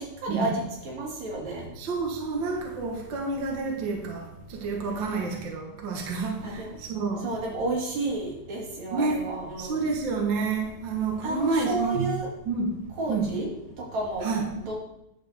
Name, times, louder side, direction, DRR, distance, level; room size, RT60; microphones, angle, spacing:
voice 1, 0.0-1.7 5.0-5.4 6.4-6.8 7.2-9.9 11.2-12.3 13.0-13.5 13.8-14.3 14.7-14.8, right 2 dB, 65° right, 3.5 m, -31 dB
voice 2, 1.8-7.3 8.9-9.3 9.6-12.1 12.5-13.4 14.2-14.6, right 4 dB, 50° right, 1.6 m, -29 dB
10.5 x 7.5 x 3.5 m
omnidirectional pair, 3.5 m